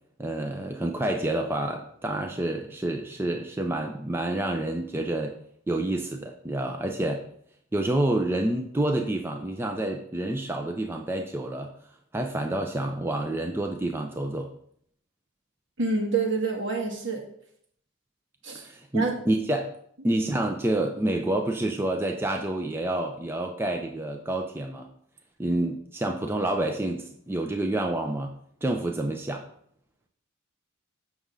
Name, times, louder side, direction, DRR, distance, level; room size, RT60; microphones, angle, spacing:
voice 1, 0.2-5.4 5.7-7.2 7.7-11.7 12.1-14.5 18.5-19.7 20.0-24.9 25.4-28.3 28.6-29.5, right 1 dB, 10° right, 3 dB, 0.4 m, -28 dB
voice 2, 15.8-17.2 18.4-18.6 18.9-19.2, right 3 dB, 60° right, 1 dB, 1.6 m, -27 dB
6.7 x 6.1 x 3.7 m, 0.67 s
head